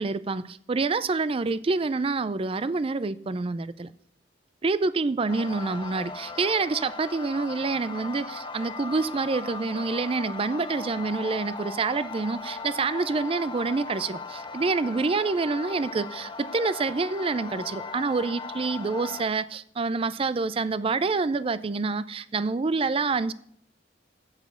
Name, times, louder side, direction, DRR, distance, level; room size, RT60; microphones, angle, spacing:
voice 1, 0.0-3.9 4.6-23.3, right 4 dB, 30° right, 0.4 m, -27 dB
sound 1, 5.3-19.2, left 4 dB, 25° left, 0.7 m, -38 dB
8.1 x 7.1 x 6.9 m
head